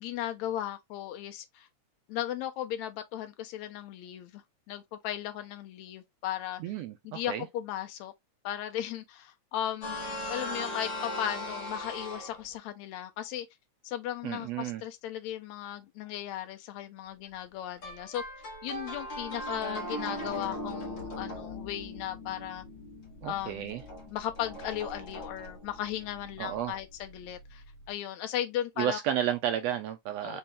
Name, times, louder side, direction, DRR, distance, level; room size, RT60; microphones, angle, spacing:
voice 1, 0.0-1.7 2.1-4.4 4.7-6.6 7.1-8.1 8.4-13.5 13.8-18.2 18.6-22.6 23.2-23.7 24.1-29.0 30.2-30.4, left 11 dB, 80° left, 2.0 m, -36 dB
voice 2, 6.6-7.5 14.2-14.8 23.2-23.8 26.4-26.8 28.8-30.4, right 10 dB, 80° right, 1.5 m, -32 dB
sound 1, 9.8-12.5 17.8-27.9, left 1 dB, 45° left, 2.0 m, -39 dB
5.1 x 2.8 x 3.6 m
omnidirectional pair, 3.3 m